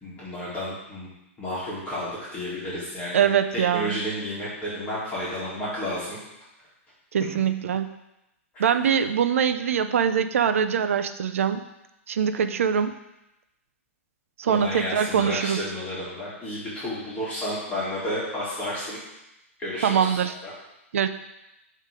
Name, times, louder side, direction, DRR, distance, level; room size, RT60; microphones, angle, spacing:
voice 1, 0.0-1.1 1.4-6.2 8.5-8.7 14.5-19.0 19.6-20.5, left 1 dB, 20° left, -9 dB, 2.2 m, -31 dB
voice 2, 3.1-4.0 7.1-7.9 8.6-11.6 12.1-12.9 14.4-15.6 19.8-20.3 20.9-21.1, right 8 dB, 75° right, 10 dB, 0.5 m, -23 dB
7.4 x 3.2 x 5.1 m, 0.91 s
hypercardioid pair, 120°, 7 cm